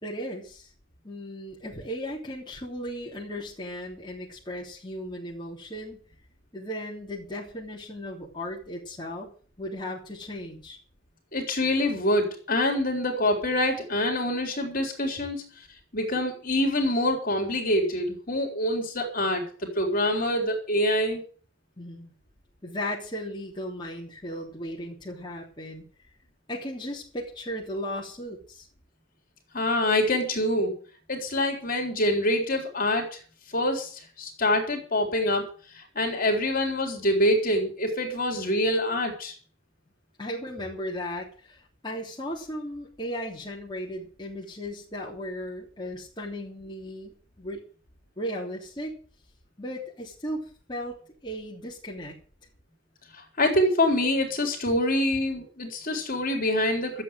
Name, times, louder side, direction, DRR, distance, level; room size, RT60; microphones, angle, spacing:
voice 1, 0.0-0.7 1.0-6.0 6.5-9.3 9.6-10.8 21.8-22.1 22.6-25.8 26.5-28.7 40.2-47.6 48.2-49.0 49.6-51.0 51.2-52.1, equal, 20° left, -4 dB, 3.3 m, -36 dB
voice 2, 11.3-15.4 15.9-19.4 19.8-21.2 29.5-30.8 31.1-33.2 33.5-35.5 35.7-39.3 53.1-57.0, left 1 dB, 45° left, 3 dB, 4.0 m, -25 dB
12.5 x 8.2 x 9.0 m, 0.42 s
head